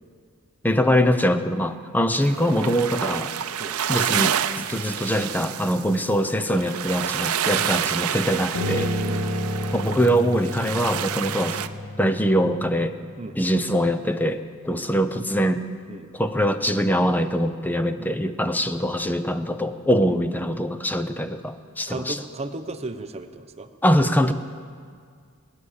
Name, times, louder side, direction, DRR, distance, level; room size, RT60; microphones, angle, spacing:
voice 1, 0.6-3.3 3.9-8.9 9.7-11.6 12.0-12.9 13.4-15.6 16.1-22.2 23.8-24.3, equal, 10° left, 10 dB, 0.6 m, -23 dB
sound 1, 2.2-11.7, right 9 dB, 80° right, 0.6 m, -28 dB
Piano, 8.5-13.8, left 1 dB, 60° left, 3.4 m, -30 dB
voice 2, 21.9-23.7, right 2 dB, 30° right, 8 dB, 0.8 m, -35 dB
20.0 x 9.9 x 7.3 m, 2.1 s
head